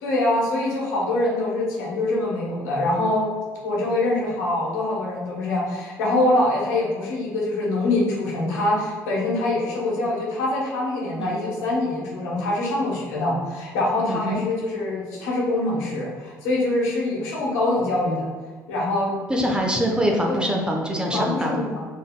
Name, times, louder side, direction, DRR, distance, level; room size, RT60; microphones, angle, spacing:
voice 1, 0.0-3.3 3.6-18.3 18.7-19.1 20.3-20.5 21.1-21.8, left 2 dB, 75° left, -4 dB, 1.1 m, -24 dB
voice 2, 14.1-14.4 19.3-21.6, equal, 10° right, 0 dB, 0.7 m, -24 dB
3.6 x 3.5 x 2.2 m, 1.5 s
hypercardioid pair, 55°, 9 cm